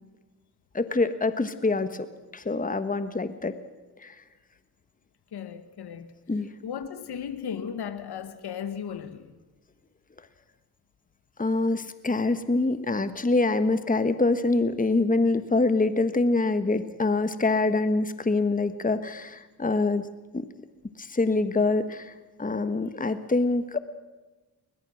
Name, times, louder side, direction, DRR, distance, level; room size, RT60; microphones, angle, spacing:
voice 1, 0.7-2.1 2.3-3.5 4.0-4.1 6.3-6.5 11.4-20.1 20.3-20.5 21.0-22.1 22.4-23.8, left 3 dB, 20° left, 1.3 m, -25 dB
voice 2, 5.3-6.1 6.6-9.4, left 8 dB, 80° left, 1.3 m, -36 dB
21.0 x 20.5 x 6.3 m
cardioid pair, 55°, 39 cm